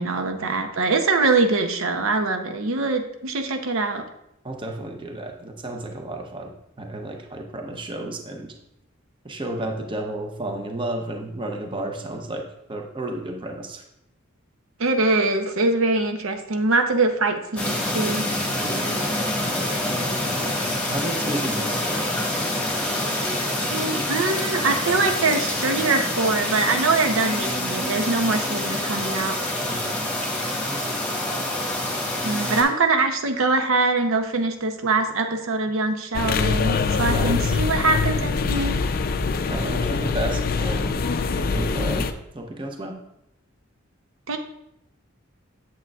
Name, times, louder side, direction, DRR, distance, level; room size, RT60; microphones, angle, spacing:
voice 1, 0.0-4.0 14.8-18.3 23.7-29.4 32.2-38.8 44.3-44.4, right 3 dB, 80° right, 6 dB, 0.7 m, -23 dB
voice 2, 4.4-6.5 6.8-8.5 9.2-12.4 12.7-13.8 18.6-20.0 20.4-22.2 29.6-29.9 30.7-31.0 37.1-37.5 39.5-41.0 41.3-42.1 42.3-43.0, right 1 dB, 25° right, 3 dB, 0.7 m, -32 dB
sound 1, 17.6-32.6, left 1 dB, 5° left, 1.3 m, -26 dB
sound 2, 36.1-42.1, left 4 dB, 45° left, 0.4 m, -24 dB
8.3 x 7.3 x 2.4 m, 0.83 s
head